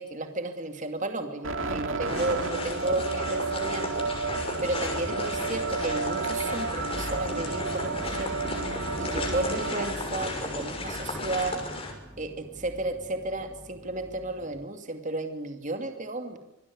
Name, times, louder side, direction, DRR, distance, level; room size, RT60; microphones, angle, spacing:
voice 1, 0.0-8.4 8.7-11.6 12.2-16.4, right 2 dB, 35° right, 6 dB, 2.6 m, -33 dB
sound 1, 1.4-9.9, right 4 dB, 60° right, 2.7 m, -32 dB
sound 2, 2.0-11.9, left 2 dB, 25° left, 6.2 m, -35 dB
sound 3, 6.9-14.6, equal, ahead, 1.8 m, -44 dB
26.5 x 20.5 x 9.6 m, 0.85 s
head